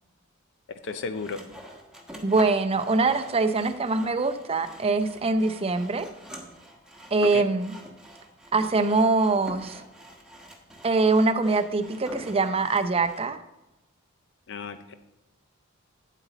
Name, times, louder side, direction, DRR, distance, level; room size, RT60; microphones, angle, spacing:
voice 1, 0.7-1.4 7.2-7.5 14.5-14.9, left 4 dB, 60° left, 9 dB, 0.5 m, -34 dB
Sawing, 0.8-13.3, equal, 5° right, 1.1 m, -46 dB
voice 2, 2.2-6.1 7.1-7.7 8.5-9.8 10.8-13.4, right 3 dB, 25° right, 9 dB, 0.6 m, -23 dB
9.2 x 8.0 x 4.0 m, 0.97 s
head